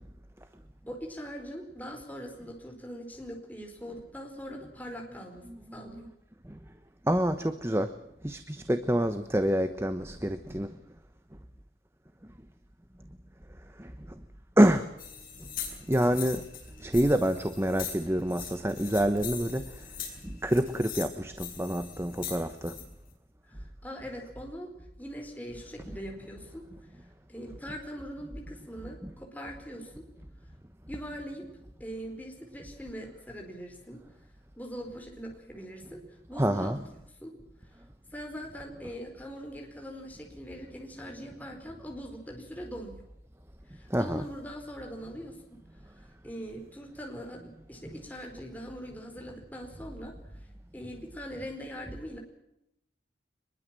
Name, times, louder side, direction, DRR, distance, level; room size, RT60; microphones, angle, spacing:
voice 1, 0.9-6.1 23.5-24.7 25.0-26.6 27.3-30.1 30.9-31.5 31.8-34.0 34.6-36.8 37.2-37.3 38.1-43.0 43.7-45.6 46.2-50.5 50.7-52.2, equal, 10° left, 2 dB, 4.7 m, -42 dB
voice 2, 7.1-7.9 8.2-10.7 13.8-13.9 14.6-14.9 15.9-16.4 16.8-19.7 20.2-22.7 36.4-36.8 43.9-44.2, equal, 15° right, 9 dB, 1.1 m, -26 dB
sound 1, 15.0-22.8, left 7 dB, 50° left, 7.7 m, -41 dB
24.0 x 22.0 x 7.6 m, 0.82 s
head